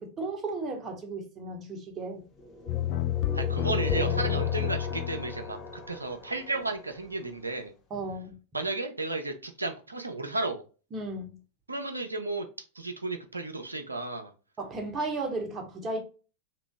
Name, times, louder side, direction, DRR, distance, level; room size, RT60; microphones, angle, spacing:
voice 1, 0.0-2.2 7.9-8.3 10.9-11.3 14.6-16.0, right 2 dB, 25° right, 1.0 m, -34 dB
sound 1, 2.4-7.3, equal, 25° left, 0.9 m, -39 dB
sound 2, 2.7-5.7, left 13 dB, 45° left, 0.3 m, -29 dB
voice 2, 3.3-5.6 5.9-7.7 8.5-10.6 11.7-12.5 12.8-14.3, right 2 dB, 80° right, 0.6 m, -33 dB
2.9 x 2.6 x 3.4 m
figure-of-eight pair, 90°, 0 cm